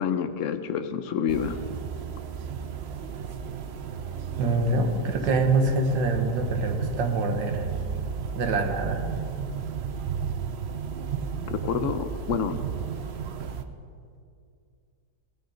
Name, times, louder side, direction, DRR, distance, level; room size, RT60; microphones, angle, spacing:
voice 1, 0.0-1.6 11.5-12.6, left 7 dB, 60° left, 10 dB, 0.9 m, -28 dB
sound 1, 1.3-13.6, right 7 dB, 65° right, 0.6 m, -33 dB
voice 2, 4.4-7.7 8.3-9.1, right 2 dB, 85° right, 5 dB, 1.9 m, -25 dB
17.0 x 10.0 x 5.2 m, 2.4 s
omnidirectional pair, 1.9 m